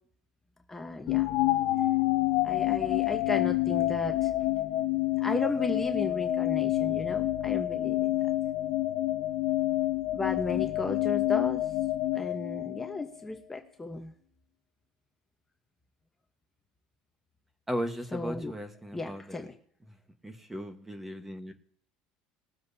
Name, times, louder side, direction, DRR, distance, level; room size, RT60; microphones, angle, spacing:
voice 1, 0.7-1.3 2.4-4.3 5.2-8.2 10.1-11.6 12.1-14.1 18.1-18.5 18.9-19.5, left 3 dB, 10° left, 4 dB, 1.1 m, -34 dB
sound 1, 1.1-13.2, left 16 dB, 60° left, 0.8 m, -28 dB
voice 2, 17.7-19.5 20.2-21.5, equal, 10° right, 7 dB, 1.3 m, -36 dB
21.0 x 7.6 x 2.8 m, 0.62 s
supercardioid pair, 115°, 2 cm